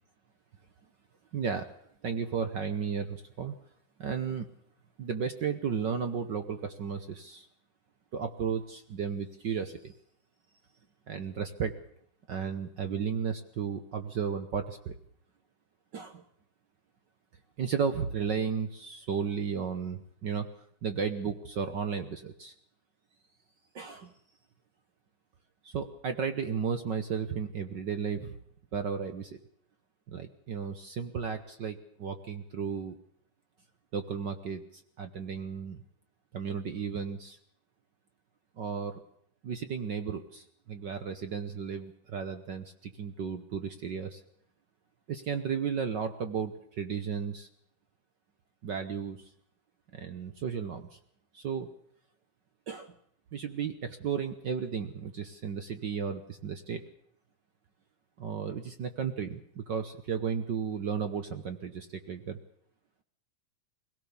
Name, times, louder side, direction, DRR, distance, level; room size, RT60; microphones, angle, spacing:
voice 1, 1.3-1.7 2.0-3.6 4.0-4.5 5.0-7.5 8.1-9.9 11.1-11.7 12.3-14.9 15.9-16.2 17.6-20.5 20.8-22.5 23.7-24.1 25.6-28.4 28.7-29.4 30.1-33.0 33.9-35.8 36.3-37.4 38.6-39.0 39.4-44.2 45.1-47.5 48.6-49.3 49.9-51.0 51.3-51.7 52.7-52.9 53.3-56.8 58.2-62.4, right 6 dB, 65° right, 9 dB, 1.1 m, -34 dB
22.0 x 17.0 x 7.0 m, 0.68 s
omnidirectional pair, 3.4 m